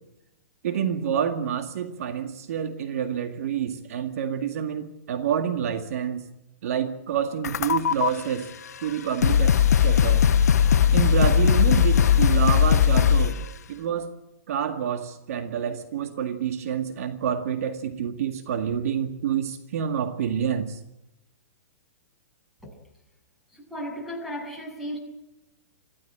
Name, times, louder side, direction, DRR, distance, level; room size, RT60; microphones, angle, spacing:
voice 1, 0.6-6.3 6.6-8.5 8.8-10.3 10.9-13.4 13.7-14.1 14.5-20.8, right 8 dB, 65° right, 7 dB, 2.0 m, -28 dB
sound 1, 7.4-8.1 8.8-8.9 9.2-13.4, left 8 dB, 80° left, 1.1 m, -19 dB
voice 2, 23.5-25.0, equal, ahead, 1 dB, 7.4 m, -35 dB
24.5 x 15.5 x 9.0 m, 0.92 s
hypercardioid pair, 140°, 9 cm